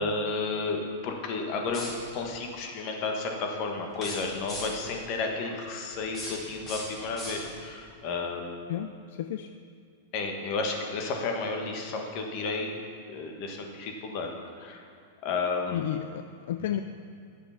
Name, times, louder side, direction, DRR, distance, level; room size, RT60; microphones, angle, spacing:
voice 1, 0.0-8.5 10.1-12.8 13.1-14.3 14.6-14.8 15.2-15.8, left 3 dB, 45° left, 2 dB, 1.4 m, -32 dB
sound 1, 1.6-2.3 3.9-5.0 5.9-7.8, left 1 dB, 25° left, 2.6 m, -40 dB
voice 2, 8.7-9.5 15.7-16.8, left 11 dB, 65° left, 10 dB, 0.3 m, -32 dB
10.0 x 6.8 x 5.8 m, 2.3 s
supercardioid pair, 140°, 0 cm